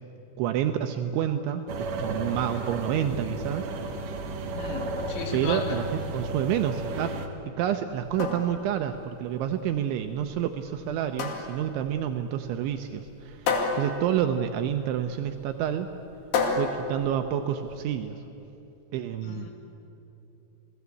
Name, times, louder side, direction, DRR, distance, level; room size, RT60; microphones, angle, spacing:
voice 1, 0.4-3.7 5.3-5.9 6.1-7.1 7.6-15.9 16.5-18.2 18.9-19.5, right 10 dB, 80° right, 7 dB, 2.8 m, -29 dB
sound 1, 1.7-7.3, right 2 dB, 65° right, 2.2 m, -33 dB
voice 2, 4.6-5.6 19.2-19.5, left 4 dB, 80° left, 3 dB, 5.0 m, -35 dB
sound 2, 7.9-17.9, left 4 dB, 55° left, 4.0 m, -33 dB
28.0 x 19.5 x 8.4 m, 2.9 s
omnidirectional pair, 6.0 m